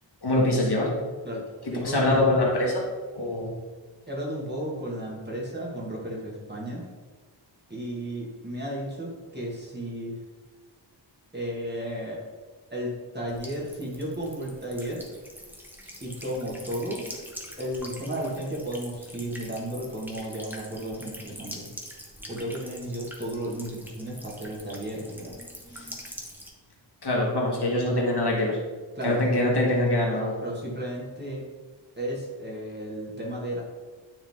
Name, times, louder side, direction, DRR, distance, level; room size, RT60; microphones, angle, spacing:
voice 1, 0.2-0.9 1.7-2.9 3.1-3.5 25.7-25.9 27.0-28.6 29.0-30.4, left 1 dB, 55° left, -2 dB, 1.6 m, -24 dB
voice 2, 1.7-2.2 4.1-6.9 7.7-10.2 11.3-12.2 12.7-15.1 16.0-17.0 17.6-21.7 22.3-25.4 29.0-29.3 30.4-31.4 32.0-33.6, equal, 20° right, -4 dB, 1.7 m, -33 dB
Buzz / Water tap faucet / Trickle dribble, 13.3-26.5, equal, 5° right, 1.0 m, -44 dB
9.3 x 3.7 x 3.6 m, 1.4 s
wide cardioid pair, 105°, 46 cm